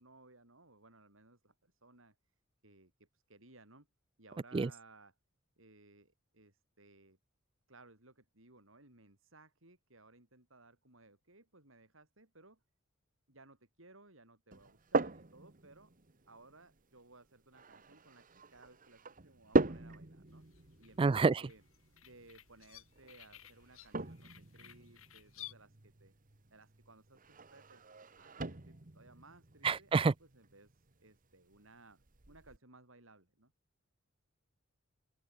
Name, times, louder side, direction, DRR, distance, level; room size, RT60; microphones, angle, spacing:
voice 1, 0.0-2.2 2.6-3.9 4.2-5.1 5.6-7.2 7.7-12.6 13.3-15.9 16.3-20.4 20.8-21.6 22.0-26.1 26.5-27.8 28.2-33.5, right 2 dB, 70° right, 6.4 m, -61 dB
sound 1, 14.5-32.6, right 2 dB, 40° right, 1.4 m, -41 dB
sound 2, 20.3-25.5, left 13 dB, 90° left, 4.3 m, -56 dB
voice 2, 21.0-21.3 29.6-30.1, right 4 dB, 25° right, 0.3 m, -27 dB
open air
head